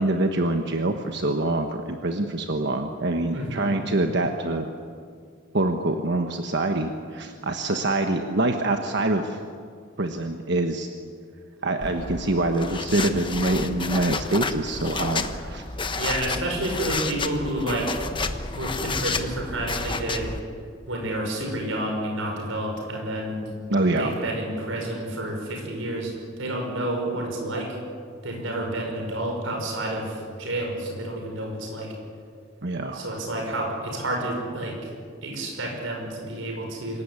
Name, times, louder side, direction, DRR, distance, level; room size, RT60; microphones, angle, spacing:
voice 1, 0.0-4.7 5.5-9.4 10.0-10.9 11.6-15.6 23.7-24.2 32.6-33.0, right 2 dB, 60° right, 5 dB, 1.3 m, -25 dB
voice 2, 3.3-3.7 16.0-18.2 18.5-20.3 20.9-23.5 24.0-26.1 26.4-27.8 28.2-31.9 32.9-34.9 35.2-37.0, right 1 dB, 80° right, 1 dB, 5.5 m, -30 dB
sound 1, 11.8-20.4, left 4 dB, 25° left, 1.1 m, -31 dB
26.0 x 16.0 x 9.8 m, 2.1 s
head